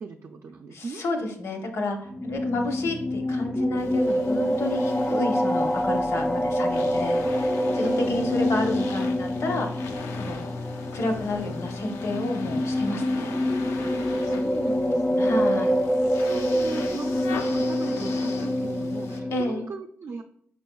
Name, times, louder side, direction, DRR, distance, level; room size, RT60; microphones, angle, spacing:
voice 1, 0.0-1.0 7.8-8.3 14.1-15.5 16.0-20.2, right 4 dB, 60° right, 1 dB, 0.4 m, -38 dB
voice 2, 0.7-9.8 10.2-10.5 10.9-13.3 15.2-15.7 19.3-19.7, left 2 dB, 70° left, 3 dB, 0.9 m, -30 dB
sound 1, 2.1-19.4, left 1 dB, 10° left, 0.3 m, -26 dB
sound 2, 3.8-19.2, left 4 dB, 85° left, 0.5 m, -41 dB
5.5 x 4.2 x 2.3 m, 0.64 s
cardioid pair, 65°, 5 cm